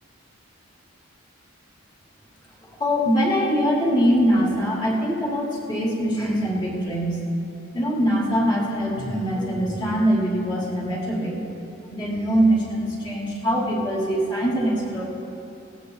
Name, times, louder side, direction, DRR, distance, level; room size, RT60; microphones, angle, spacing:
voice 1, 2.8-7.2 7.7-11.4 11.9-15.0, equal, 20° left, -4 dB, 2.7 m, -23 dB
18.5 x 17.0 x 2.3 m, 2.8 s
head